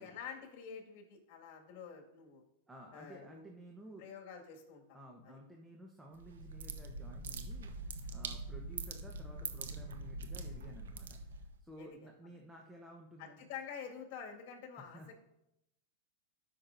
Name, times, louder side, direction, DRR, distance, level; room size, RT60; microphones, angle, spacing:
voice 1, 0.0-2.4 2.9-3.4 4.0-5.0 5.2-5.4 11.8-12.0 13.2-15.0, left 7 dB, 55° left, 1 dB, 2.1 m, -48 dB
voice 2, 2.7-4.1 4.9-13.4 14.8-15.1, equal, 10° right, 0 dB, 1.1 m, -54 dB
sound 1, 6.1-11.6, right 3 dB, 90° right, 0.9 m, -43 dB
12.5 x 6.0 x 2.7 m, 0.87 s
hypercardioid pair, 125°, 0 cm